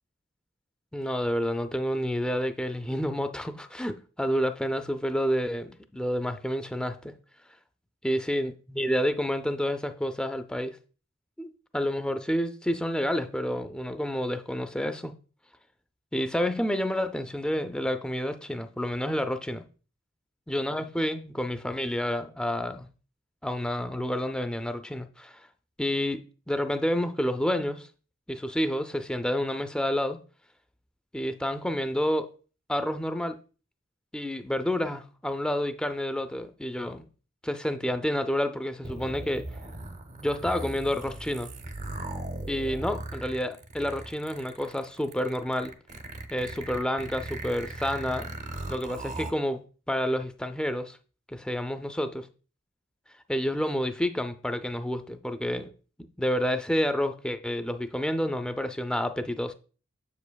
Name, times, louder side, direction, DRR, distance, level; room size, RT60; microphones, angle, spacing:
voice 1, 0.9-7.1 8.0-10.8 11.4-15.1 16.1-19.6 20.5-22.9 23.4-25.4 25.8-26.2 26.5-27.9 28.3-30.2 31.1-32.3 32.7-33.4 34.1-37.1 37.4-39.5 40.2-41.6 42.5-45.7 46.3-48.3 48.7-51.0 51.3-52.3 53.3-55.7 56.2-59.5, equal, 5° left, 0.4 m, -29 dB
sound 1, 38.8-49.3, right 2 dB, 35° right, 0.6 m, -38 dB
7.1 x 7.0 x 2.3 m
head